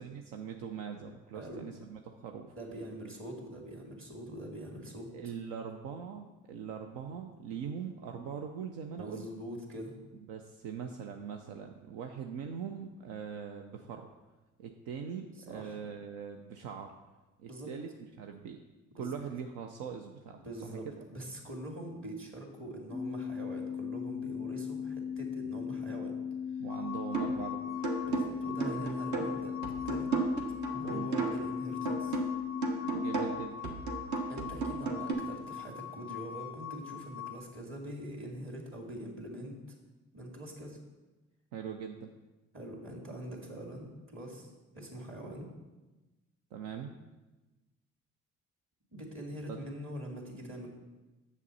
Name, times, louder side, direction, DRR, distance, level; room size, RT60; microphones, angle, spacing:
voice 1, 0.0-2.6 5.1-9.3 10.3-14.1 14.6-16.9 17.4-17.9 18.2-18.6 18.9-21.0 26.6-27.8 30.8-31.1 32.9-33.6 41.5-42.1 46.5-47.0 49.5-49.6, right 7 dB, 80° right, 4 dB, 0.6 m, -41 dB
voice 2, 2.6-5.1 9.0-10.0 15.5-15.8 17.5-17.7 18.9-19.1 20.3-26.1 28.0-29.5 29.8-30.1 30.7-32.2 34.3-39.6 40.1-40.8 42.5-45.5 48.9-50.7, right 1 dB, 40° right, 0 dB, 2.3 m, -43 dB
sound 1, 22.9-33.4, left 7 dB, 20° left, 0.4 m, -38 dB
sound 2, 26.7-37.4, left 11 dB, 5° right, 0.8 m, -44 dB
sound 3, 27.1-27.5 27.8-31.5 31.9-35.1, right 3 dB, 60° right, 1.3 m, -34 dB
7.2 x 6.9 x 4.1 m, 1.1 s
hypercardioid pair, 50°, 33 cm